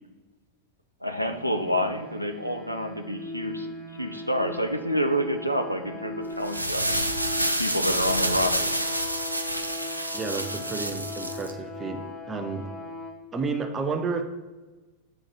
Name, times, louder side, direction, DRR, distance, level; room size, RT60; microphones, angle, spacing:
voice 1, 1.0-3.7 4.0-7.1 7.6-8.8, equal, 90° left, 6 dB, 0.5 m, -28 dB
sound 1, 1.1-13.1, left 2 dB, 15° left, 1.3 m, -39 dB
sound 2, 6.3-11.5, right 1 dB, 85° right, 0.5 m, -28 dB
voice 2, 10.1-12.7 13.3-14.2, right 4 dB, 20° right, 4 dB, 0.8 m, -31 dB
6.8 x 3.8 x 6.1 m, 1.2 s
figure-of-eight pair, 90°, 0 cm